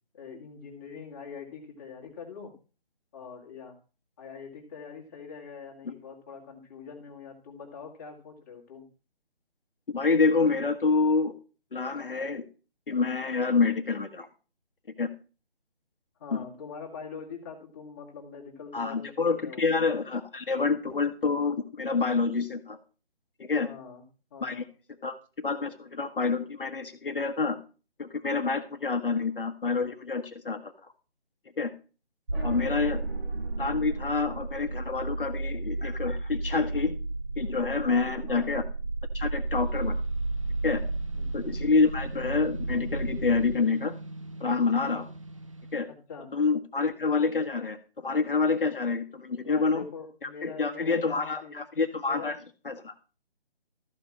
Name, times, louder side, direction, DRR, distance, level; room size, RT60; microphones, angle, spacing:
voice 1, 0.1-2.5 3.1-3.8 4.2-8.9 16.2-19.7 23.6-24.0 24.3-24.7 32.3-32.6 37.8-38.6 41.1-41.3 45.9-46.3 49.4-51.6 52.1-52.3, left 5 dB, 15° left, 0 dB, 1.9 m, -43 dB
voice 2, 9.9-11.4 11.7-12.4 12.9-14.3 15.0-15.1 16.3-16.4 18.7-22.8 23.4-23.7 24.4-24.6 25.0-27.6 28.0-30.7 31.6-31.7 32.4-33.0 33.6-37.0 37.4-38.6 39.1-40.0 40.6-40.8 41.3-44.0 44.4-45.1 45.7-45.9 46.3-49.8 50.2-52.4 52.6-52.9, left 4 dB, 60° left, 6 dB, 1.3 m, -27 dB
sound 1, 32.3-43.6, right 2 dB, 75° right, 2.3 m, -33 dB
sound 2, 39.5-45.8, right 2 dB, 30° right, 0.5 m, -43 dB
13.5 x 5.2 x 7.2 m, 0.35 s
figure-of-eight pair, 165°, 31 cm